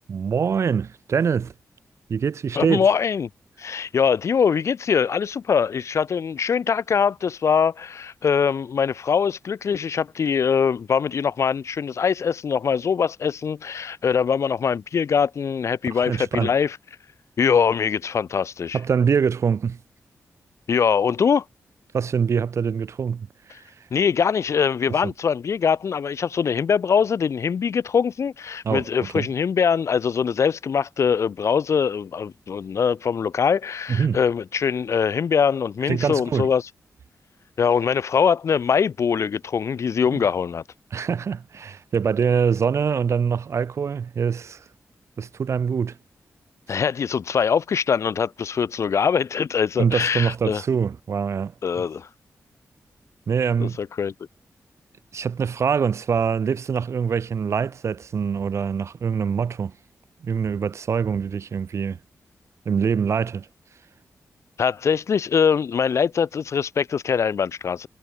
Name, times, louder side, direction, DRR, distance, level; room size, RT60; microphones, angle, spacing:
voice 1, 0.1-1.5 2.1-2.9 16.1-16.5 18.7-19.8 21.9-23.9 24.9-25.0 28.6-29.3 33.9-34.2 35.8-36.5 40.1-40.2 40.9-44.7 45.2-46.0 46.7-46.8 49.8-51.8 53.3-53.8 55.1-59.7 60.2-62.0 62.6-63.5, right 6 dB, 55° right, 1.6 m, -24 dB
voice 2, 2.5-3.3 3.6-16.8 17.4-18.8 20.7-21.4 23.9-36.6 37.6-40.6 46.7-50.6 51.6-52.1 53.6-54.1 64.6-67.9, left 6 dB, 60° left, 1.3 m, -22 dB
wide cardioid pair, 155°, 6 cm